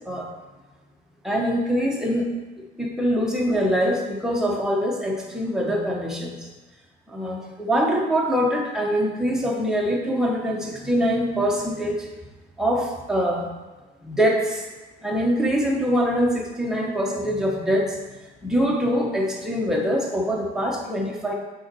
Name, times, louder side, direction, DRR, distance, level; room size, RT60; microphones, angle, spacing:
voice 1, 1.2-2.3 2.8-6.5 7.1-12.1 12.6-13.5 14.0-14.6 15.0-18.0 18.4-21.3, equal, 5° right, -1 dB, 1.2 m, -24 dB
7.4 x 4.0 x 4.6 m, 1.2 s
cardioid pair, 110°, 17 cm